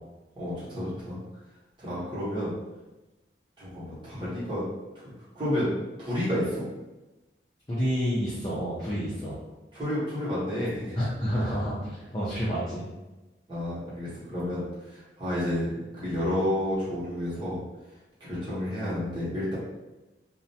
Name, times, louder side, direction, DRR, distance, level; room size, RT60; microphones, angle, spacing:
voice 1, 0.4-1.2 1.8-2.5 3.6-4.6 5.3-5.7 6.0-6.6 9.7-11.0 13.5-14.7 15.2-17.6 18.2-19.5, left 1 dB, 25° right, -11 dB, 1.0 m, -30 dB
voice 2, 7.7-9.4 10.9-12.8, equal, 20° left, -9 dB, 0.5 m, -29 dB
2.5 x 2.1 x 2.7 m, 1.1 s
head